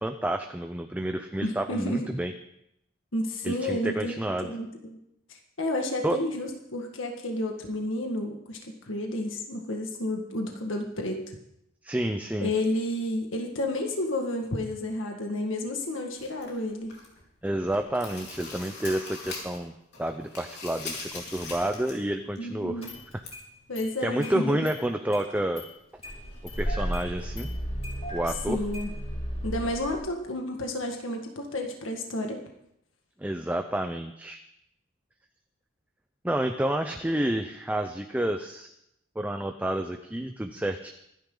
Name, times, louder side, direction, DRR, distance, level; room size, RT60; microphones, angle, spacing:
voice 1, 0.0-2.3 3.4-4.5 6.0-6.2 11.8-12.5 17.4-19.7 20.0-22.8 23.1-23.2 24.0-25.6 26.6-27.5 28.1-28.6 33.2-34.4 36.2-38.7 39.2-40.9, right 1 dB, 10° right, 6 dB, 0.6 m, -29 dB
voice 2, 1.4-2.1 3.1-4.1 4.4-5.0 5.3-11.2 12.4-17.0 22.4-22.9 23.7-24.6 28.5-28.9 29.4-32.4, left 1 dB, 75° left, 2 dB, 1.8 m, -31 dB
sound 1, 16.2-17.2 17.6-19.6 19.9-22.1 22.3-22.4 23.2-23.3, left 3 dB, 55° left, 4.0 m, -41 dB
Engine starting, 21.4-21.5 22.8-23.4 23.7-23.8 24.2-24.3 24.7-24.8 25.1-25.6 26.0-29.9, equal, 30° left, 4.7 m, -34 dB
25.0 x 10.5 x 3.9 m, 0.79 s
head